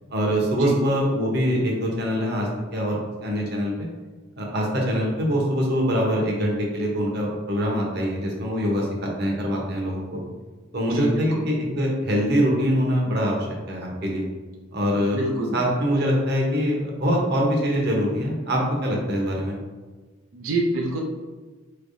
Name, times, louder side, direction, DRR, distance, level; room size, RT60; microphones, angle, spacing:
voice 1, 0.1-3.9 4.4-10.2 10.7-14.3 14.7-15.2 15.5-19.5, equal, 55° right, -1 dB, 0.9 m, -24 dB
voice 2, 10.9-11.5 15.1-15.6 20.3-21.0, right 2 dB, 90° right, 0 dB, 0.5 m, -27 dB
4.5 x 3.3 x 2.6 m, 1.3 s
head